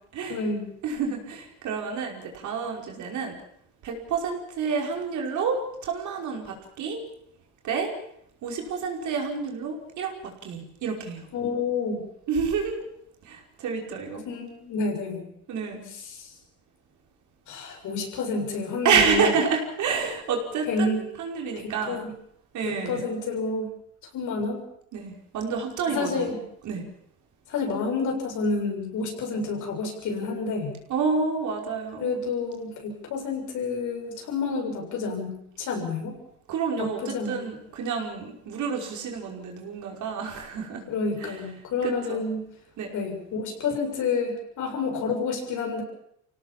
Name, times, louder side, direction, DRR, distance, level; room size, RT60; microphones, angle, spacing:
voice 1, 0.3-0.7 11.3-12.1 14.3-15.2 16.1-16.3 17.5-19.3 20.7-21.0 21.6-22.1 22.6-23.7 24.1-24.6 25.9-26.4 27.5-30.7 32.0-36.2 36.8-37.4 40.9-42.4 42.9-45.8, left 4 dB, 60° left, 2 dB, 7.3 m, -29 dB
voice 2, 0.8-3.4 3.8-7.0 7.6-7.9 8.4-11.3 12.3-12.9 13.2-14.3 15.5-15.9 18.8-22.0 22.5-23.1 24.9-26.4 26.6-26.8 30.9-32.2 36.5-40.8 41.2-41.3 41.8-42.2 42.8-42.9, right 5 dB, 60° right, 1 dB, 5.3 m, -29 dB
25.5 x 17.5 x 7.5 m, 0.73 s
supercardioid pair, 90°, 34 cm